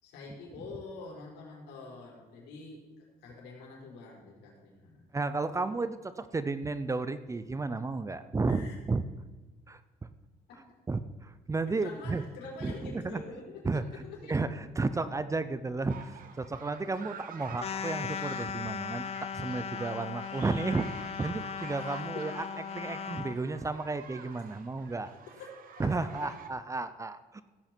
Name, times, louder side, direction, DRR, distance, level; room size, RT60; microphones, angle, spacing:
voice 1, 0.0-2.8 3.2-5.0 8.5-8.7 10.5-10.6 11.7-14.4 21.7-22.3 25.1-26.3, left 4 dB, 80° left, -3 dB, 4.7 m, -46 dB
voice 2, 5.1-9.0 9.7-10.1 10.9-12.2 12.6-13.2 13.6-13.8 14.3-20.9 21.2-22.4 22.7-25.1 25.8-27.4, right 3 dB, 20° right, 13 dB, 0.6 m, -33 dB
sound 1, 15.9-26.5, right 7 dB, 55° right, 1.3 m, -48 dB
sound 2, 17.6-23.4, left 7 dB, 35° left, 0.6 m, -38 dB
16.0 x 8.5 x 4.5 m, 1.2 s
cardioid pair, 110°, 17 cm